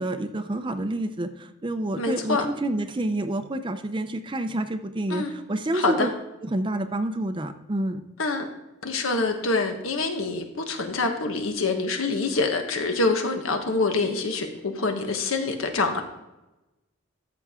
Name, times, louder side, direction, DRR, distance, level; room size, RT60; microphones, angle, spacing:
voice 1, 0.0-6.1 6.4-8.1, right 1 dB, 25° right, 9 dB, 0.6 m, -28 dB
voice 2, 2.0-2.5 5.1-5.3 5.7-6.1 8.2-8.5 8.8-16.0, left 3 dB, 75° left, 5 dB, 1.3 m, -26 dB
13.0 x 6.8 x 3.7 m, 0.99 s
head